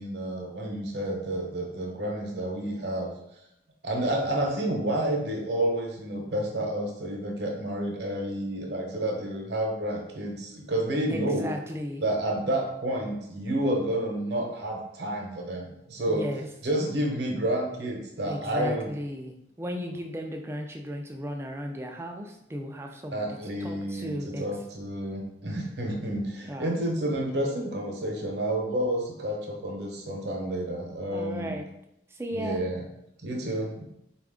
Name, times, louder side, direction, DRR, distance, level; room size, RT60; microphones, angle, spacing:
voice 1, 0.0-3.1 3.8-11.5 12.0-16.3 16.6-18.9 23.1-31.6 32.3-32.8 33.2-33.8, right 1 dB, 60° right, 1 dB, 0.8 m, -30 dB
voice 2, 11.1-12.0 16.1-16.5 18.3-24.5 26.5-26.8 31.1-31.7 32.1-32.6, equal, 15° right, 3 dB, 0.3 m, -35 dB
4.1 x 2.4 x 3.6 m, 0.80 s
head